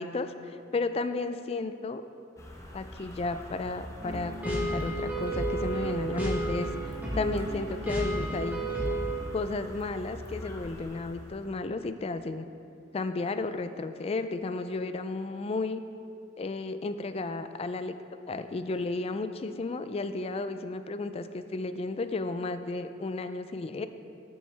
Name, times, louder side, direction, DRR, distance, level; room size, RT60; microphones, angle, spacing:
voice 1, 0.0-2.0 2.7-8.6 9.3-12.5 12.9-15.8 16.4-17.9 18.3-23.9, left 3 dB, 35° left, 10 dB, 0.3 m, -33 dB
sound 1, 2.4-11.7, left 1 dB, 15° left, 0.9 m, -45 dB
sound 2, 4.0-9.2, right 1 dB, 10° right, 1.4 m, -32 dB
12.5 x 6.2 x 3.4 m, 2.5 s
head